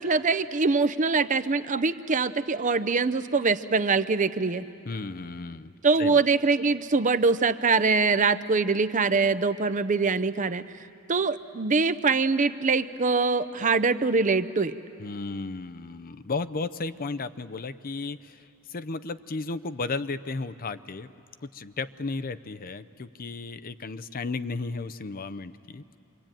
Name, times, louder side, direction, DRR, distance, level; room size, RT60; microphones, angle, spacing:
voice 1, 0.0-4.6 5.8-10.6 11.1-14.7, right 4 dB, 35° right, 12 dB, 0.6 m, -23 dB
voice 2, 4.8-5.7 6.0-6.2 15.0-21.1 21.4-26.0, left 3 dB, 40° left, 14 dB, 0.6 m, -34 dB
26.5 x 24.5 x 9.0 m, 2.8 s
head